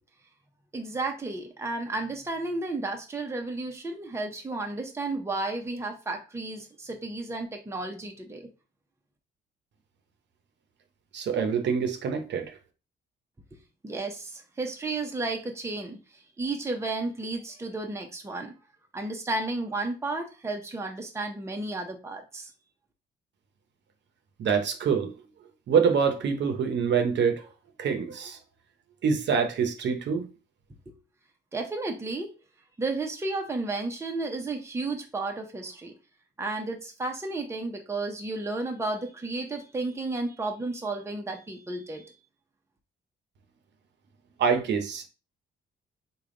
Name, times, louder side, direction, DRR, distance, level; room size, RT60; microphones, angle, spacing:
voice 1, 0.7-8.5 13.5-13.6 13.8-18.5 18.9-22.5 30.9-31.0 31.5-32.3 32.8-35.9 36.4-42.2, right 2 dB, 15° right, 0.7 m, -33 dB
voice 2, 11.1-12.6 24.4-25.1 25.7-27.4 27.8-28.4 29.0-30.3 44.4-45.1, right 6 dB, 65° right, 0.8 m, -25 dB
3.4 x 2.3 x 3.7 m
cardioid pair, 90°, 20 cm